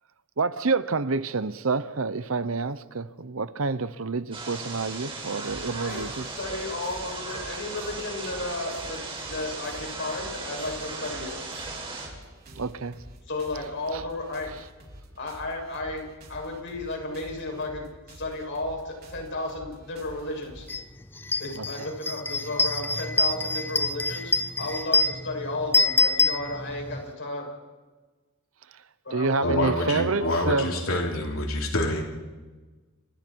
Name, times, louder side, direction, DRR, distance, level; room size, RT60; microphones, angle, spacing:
voice 1, 0.4-6.3 12.5-12.9 13.9-14.0 21.6-21.7 29.1-30.7, right 4 dB, 75° right, 0.9 m, -28 dB
sound 1, 4.3-12.1, right 3 dB, 25° right, 5.8 m, -37 dB
sound 2, 5.4-20.8, equal, 50° right, 4.4 m, -48 dB
voice 2, 5.7-6.1 6.4-11.3 13.3-14.5 15.2-20.7 21.4-27.5 29.0-31.0, left 2 dB, 60° left, 7.4 m, -33 dB
sound 3, 20.7-20.8 21.2-27.0, left 2 dB, 10° left, 0.7 m, -25 dB
voice 3, 29.4-32.0, left 1 dB, 85° left, 3.1 m, -27 dB
29.5 x 25.0 x 4.6 m
head